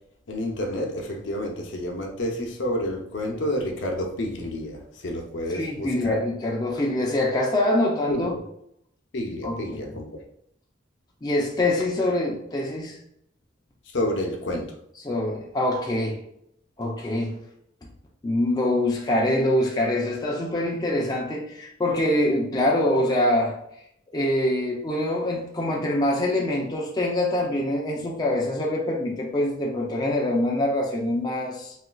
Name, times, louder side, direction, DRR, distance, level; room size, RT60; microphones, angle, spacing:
voice 1, 0.3-6.2 8.1-8.4 9.1-10.2 13.8-14.7, left 1 dB, 65° left, 2 dB, 0.6 m, -29 dB
voice 2, 5.5-8.3 9.4-9.8 11.2-13.0 15.0-16.2 16.8-17.4 18.2-23.6 24.1-31.7, left 1 dB, 20° left, -2 dB, 0.4 m, -24 dB
4.2 x 2.4 x 2.2 m, 0.75 s
head